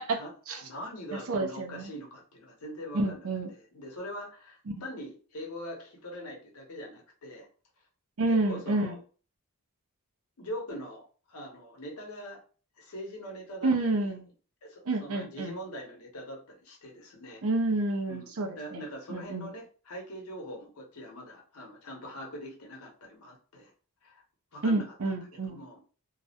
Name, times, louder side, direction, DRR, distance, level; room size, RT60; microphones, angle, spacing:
voice 1, 0.0-0.6 1.1-1.9 2.9-3.5 8.2-8.9 13.6-14.2 14.9-15.5 17.4-18.8 19.1-19.5 24.6-25.6, right 2 dB, 70° right, 5 dB, 0.5 m, -29 dB
voice 2, 0.6-3.2 3.6-7.5 8.3-9.0 10.4-12.4 12.8-13.9 14.6-17.4 18.1-18.3 18.6-23.7 24.0-24.2 24.5-25.8, equal, 85° left, 1 dB, 0.8 m, -42 dB
2.3 x 2.0 x 2.7 m, 0.38 s
head